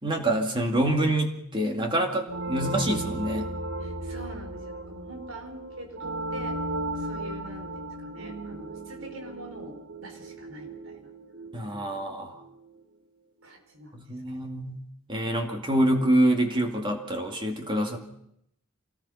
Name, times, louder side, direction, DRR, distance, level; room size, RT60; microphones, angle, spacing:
voice 1, 0.0-3.5 11.5-12.4 13.9-14.8 15.1-18.0, right 1 dB, 25° right, 3 dB, 2.3 m, -26 dB
sound 1, 2.3-12.7, right 2 dB, 55° right, 2.0 m, -36 dB
voice 2, 3.8-6.6 6.9-11.1 13.4-13.9 14.3-14.4, right 1 dB, 85° right, 5 dB, 4.4 m, -44 dB
26.5 x 19.0 x 5.7 m, 0.76 s
head